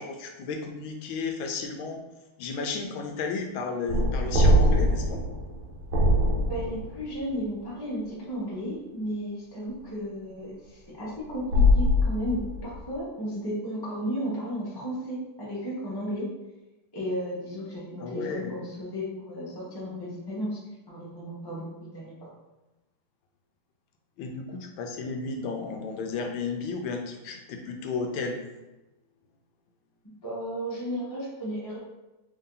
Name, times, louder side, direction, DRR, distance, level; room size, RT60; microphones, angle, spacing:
voice 1, 0.0-2.0 2.4-5.2 18.0-18.6 24.2-28.4, left 4 dB, 75° left, 3 dB, 1.2 m, -33 dB
sound 1, 3.9-7.1 11.5-12.8, left 1 dB, 70° right, 1.3 m, -22 dB
voice 2, 6.5-16.3 16.9-20.6 20.9-22.3 30.2-31.8, equal, 20° left, -8 dB, 0.7 m, -34 dB
3.6 x 2.7 x 3.8 m, 1.0 s
omnidirectional pair, 2.4 m